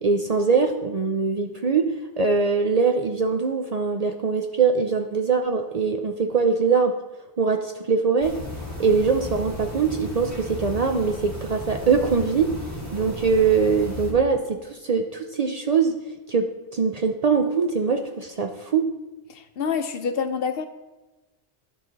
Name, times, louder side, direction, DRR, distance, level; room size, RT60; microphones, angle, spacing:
voice 1, 0.0-6.9 7.4-8.4 8.8-12.6 12.9-15.9 16.3-18.9, right 5 dB, 50° right, 5 dB, 0.5 m, -22 dB
sound 1, 8.2-14.1, left 1 dB, 15° right, 1.7 m, -35 dB
voice 2, 19.3-20.7, left 6 dB, 65° left, 9 dB, 0.8 m, -27 dB
11.0 x 5.8 x 3.9 m, 1.1 s
omnidirectional pair, 1.1 m